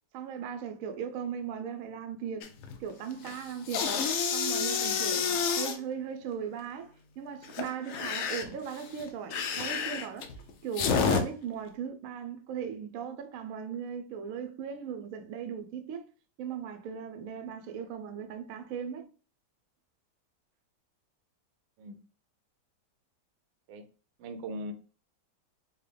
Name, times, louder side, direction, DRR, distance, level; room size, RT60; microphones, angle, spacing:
voice 1, 0.1-2.5 2.8-3.9 4.3-10.3 10.6-16.0 16.4-19.1, right 7 dB, 70° right, 0.8 m, -38 dB
sound 1, 2.4-2.8 3.1-5.8 7.4-11.2, left 6 dB, 75° left, 0.7 m, -29 dB
voice 2, 24.2-24.7, right 1 dB, 90° right, 1.3 m, -39 dB
4.1 x 2.2 x 3.3 m
omnidirectional pair, 1.9 m